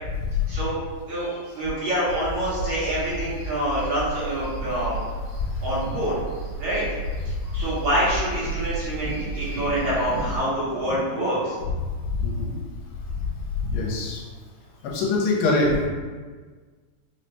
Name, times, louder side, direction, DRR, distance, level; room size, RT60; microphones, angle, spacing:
voice 1, 0.5-0.8 1.1-5.0 5.6-6.2 6.6-6.9 7.3-11.6, right 1 dB, 65° right, -9 dB, 2.3 m, -26 dB
sound 1, 2.1-10.4, right 2 dB, 85° right, 2.7 m, -33 dB
voice 2, 12.1-12.5 13.6-14.2 14.8-15.9, left 3 dB, 90° left, -3 dB, 2.3 m, -23 dB
5.6 x 2.1 x 3.0 m, 1.5 s
omnidirectional pair, 4.0 m